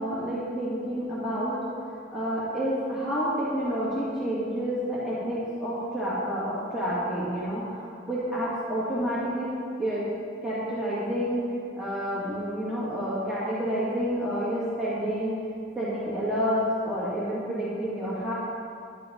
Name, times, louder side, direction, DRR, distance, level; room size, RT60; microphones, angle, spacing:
voice 1, 0.0-1.6 1.8-9.5 9.8-10.0 10.4-11.4 11.8-15.4 15.8-18.3, equal, 5° right, -10 dB, 2.3 m, -29 dB
11.5 x 10.5 x 5.3 m, 2.4 s
head